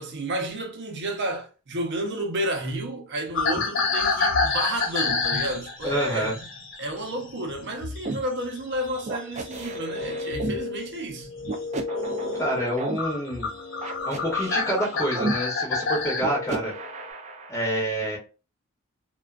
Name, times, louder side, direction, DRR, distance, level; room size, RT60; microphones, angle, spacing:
voice 1, 0.0-6.3 6.8-11.3, right 1 dB, 55° right, 0.7 m, -31 dB
sound 1, 3.3-8.1 8.4-10.5 11.1-11.4 11.9-12.1 12.6-12.7 13.0-16.2, left 4 dB, 60° left, 1.0 m, -28 dB
voice 2, 5.8-6.3 12.4-13.5 14.0-16.7 17.5-18.2, right 1 dB, 15° left, 0.7 m, -27 dB
sound 2, 8.0-8.2 9.1-10.6 11.4-13.0 13.8-15.3 16.2-17.5, right 3 dB, 35° right, 0.3 m, -32 dB
sound 3, 9.3-17.1, left 3 dB, 90° left, 0.5 m, -37 dB
2.4 x 2.3 x 2.3 m
head